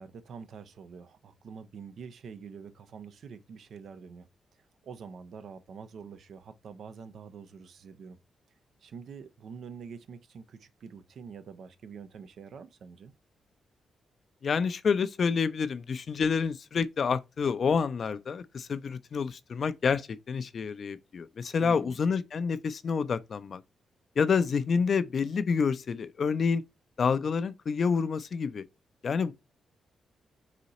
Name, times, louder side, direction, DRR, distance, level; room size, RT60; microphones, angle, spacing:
voice 1, 0.0-4.3 4.8-8.2 8.8-13.1 21.6-22.0, right 6 dB, 70° right, 0.5 m, -46 dB
voice 2, 14.4-23.6 24.2-26.6 27.0-28.6 29.0-29.3, left 5 dB, 60° left, 0.4 m, -28 dB
4.1 x 2.7 x 4.0 m
supercardioid pair, 45°, 0 cm